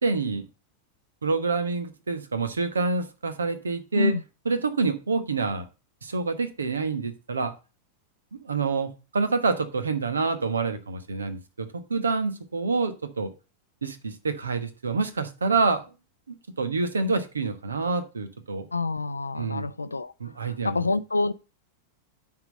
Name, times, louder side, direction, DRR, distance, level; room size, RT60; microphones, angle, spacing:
voice 1, 0.0-0.4 1.2-4.1 4.4-5.6 6.0-7.5 8.3-13.3 13.8-15.8 16.3-18.7 19.4-19.7 20.2-20.8, right 4 dB, 75° right, 1.2 m, -27 dB
voice 2, 18.7-20.1 20.4-21.3, left 3 dB, 80° left, 0.4 m, -27 dB
10.5 x 3.9 x 6.6 m
figure-of-eight pair, 90°, 0 cm